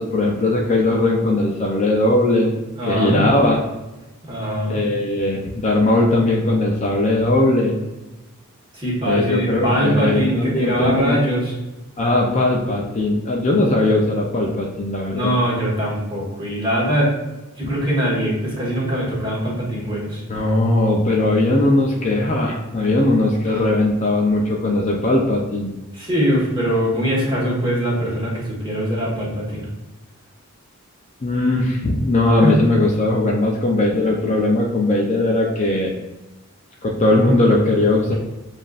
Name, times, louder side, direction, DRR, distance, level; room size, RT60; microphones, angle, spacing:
voice 1, 0.0-2.5 2.8-3.6 4.7-7.8 9.0-11.1 12.0-15.3 17.6-17.7 20.3-25.7 31.2-35.9 36.8-38.1, left 2 dB, 30° left, -1 dB, 0.5 m, -19 dB
voice 2, 2.8-3.2 4.3-4.8 8.7-11.5 15.1-17.1 17.6-20.2 25.9-29.6 32.4-32.6, equal, 20° right, -6 dB, 1.4 m, -22 dB
7.3 x 2.5 x 2.4 m, 1.0 s
head